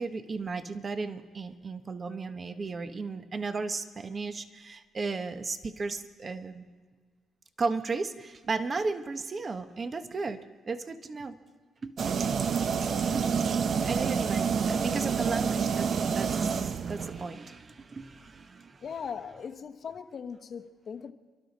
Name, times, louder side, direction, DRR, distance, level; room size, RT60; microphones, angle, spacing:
voice 1, 0.0-6.7 7.6-11.4 11.8-12.0 13.0-13.3 13.8-18.9, right 4 dB, 35° right, 10 dB, 1.0 m, -35 dB
sound 1, 12.0-17.3, right 6 dB, 55° right, 0.6 m, -28 dB
voice 2, 18.8-21.1, left 6 dB, 55° left, 8 dB, 1.0 m, -39 dB
28.5 x 12.5 x 4.1 m, 1.5 s
cardioid pair, 90°, 0 cm